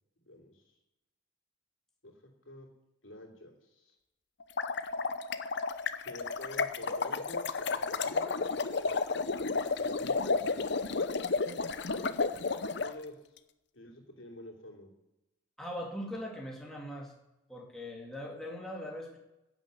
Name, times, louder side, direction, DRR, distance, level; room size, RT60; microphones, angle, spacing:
voice 1, 0.3-0.8 2.0-2.7 3.0-4.0 6.0-10.5 11.7-12.2 12.8-13.4 13.7-14.9, left 1 dB, 75° left, 1 dB, 3.1 m, -49 dB
sound 1, 4.4-12.9, left 4 dB, 55° left, 0.7 m, -32 dB
voice 2, 15.6-17.1 17.5-19.2, equal, ahead, -2 dB, 2.1 m, -40 dB
11.0 x 9.1 x 8.0 m, 0.95 s
head